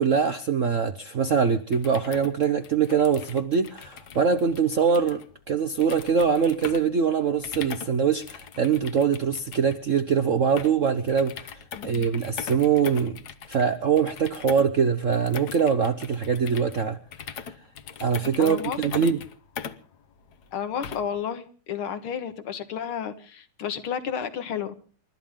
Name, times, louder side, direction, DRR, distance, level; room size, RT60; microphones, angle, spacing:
voice 1, 0.0-13.2 13.5-17.0 18.0-19.2, right 6 dB, 55° right, 8 dB, 0.8 m, -23 dB
sound 1, 1.6-21.2, left 7 dB, 55° left, 1.4 m, -41 dB
voice 2, 11.7-12.1 18.4-19.0 20.5-24.7, left 8 dB, 70° left, 10 dB, 2.4 m, -32 dB
29.5 x 13.0 x 3.7 m, 0.41 s
omnidirectional pair, 2.4 m